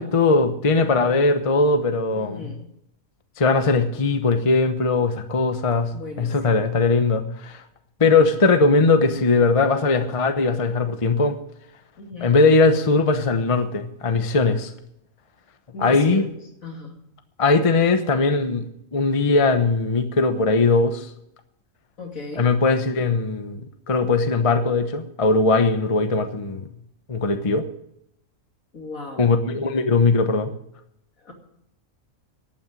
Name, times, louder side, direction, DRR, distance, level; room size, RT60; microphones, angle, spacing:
voice 1, 0.0-2.4 3.4-5.9 6.2-7.6 8.0-11.4 12.2-14.7 15.8-16.2 17.4-18.7 18.9-21.1 22.4-23.6 23.9-26.7 27.1-27.7 29.2-30.5, left 3 dB, 25° left, 8 dB, 0.9 m, -19 dB
voice 2, 2.1-2.6 5.9-6.7 12.0-12.4 15.7-16.4 16.6-17.0 22.0-22.5 28.7-29.3 31.2-31.3, left 2 dB, 70° left, 1 dB, 3.2 m, -36 dB
11.5 x 8.8 x 9.5 m, 0.77 s
omnidirectional pair, 1.5 m